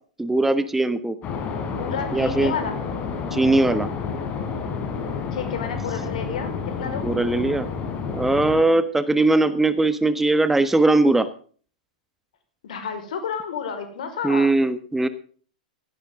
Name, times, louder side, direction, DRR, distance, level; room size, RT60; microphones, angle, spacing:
voice 1, 0.2-1.2 2.1-2.5 3.3-3.9 7.0-7.7 8.1-11.3 14.2-15.1, right 2 dB, 5° right, 12 dB, 1.4 m, -20 dB
sound 1, 1.2-8.6, left 5 dB, 30° left, 3.9 m, -30 dB
voice 2, 1.7-2.8 5.3-7.1 12.6-14.5, left 6 dB, 65° left, 7 dB, 5.0 m, -31 dB
17.0 x 15.5 x 3.8 m, 0.43 s
figure-of-eight pair, 105°, 4 cm